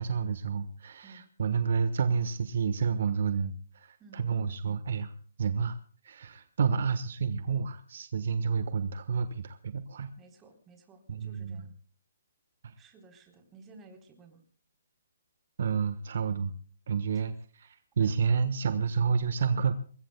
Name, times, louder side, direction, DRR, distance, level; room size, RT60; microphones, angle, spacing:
voice 1, 0.0-5.8 6.0-10.1 11.1-11.7 12.6-12.7 15.6-16.5 16.9-19.7, right 6 dB, 60° right, 11 dB, 1.2 m, -30 dB
voice 2, 10.2-11.7 12.8-14.4 17.1-17.3 17.7-18.3, right 3 dB, 15° right, 4 dB, 3.7 m, -55 dB
24.5 x 21.0 x 2.3 m, 0.43 s
hypercardioid pair, 150°, 0 cm